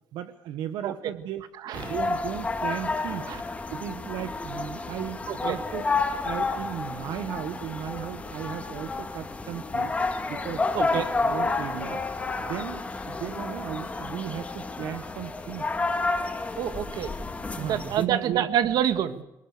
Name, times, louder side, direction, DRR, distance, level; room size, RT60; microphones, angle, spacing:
voice 1, 0.1-1.4 1.7-3.3 3.7-5.8 6.2-9.9 10.3-12.0 12.5-15.7 17.4-18.5, right 11 dB, 85° right, 9 dB, 1.3 m, -36 dB
voice 2, 1.6-1.9 3.3-3.4 5.3-5.6 10.7-11.1 16.6-17.1 17.6-19.2, right 10 dB, 70° right, 9 dB, 1.9 m, -27 dB
sound 1, 1.7-18.0, left 3 dB, 20° left, 3.1 m, -30 dB
24.0 x 21.5 x 6.7 m, 0.89 s
cardioid pair, 135°, 7 cm